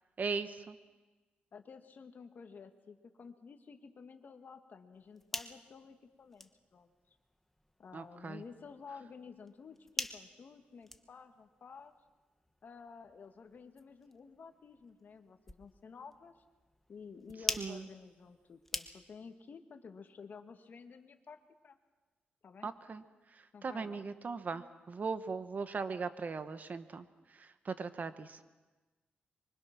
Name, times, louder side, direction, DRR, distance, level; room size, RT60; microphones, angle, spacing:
voice 1, 0.2-0.8 7.9-8.4 17.6-17.9 22.6-23.0 23.3-27.0 27.3-28.4, right 4 dB, 50° right, 10 dB, 1.5 m, -39 dB
voice 2, 1.5-6.9 7.8-11.9 12.6-16.3 16.9-21.8 22.4-22.7 23.5-24.0, left 5 dB, 55° left, 6 dB, 2.0 m, -52 dB
sound 1, 4.9-19.3, left 1 dB, 5° left, 1.2 m, -46 dB
25.0 x 24.0 x 6.1 m, 1.2 s
cardioid pair, 80°, 4 cm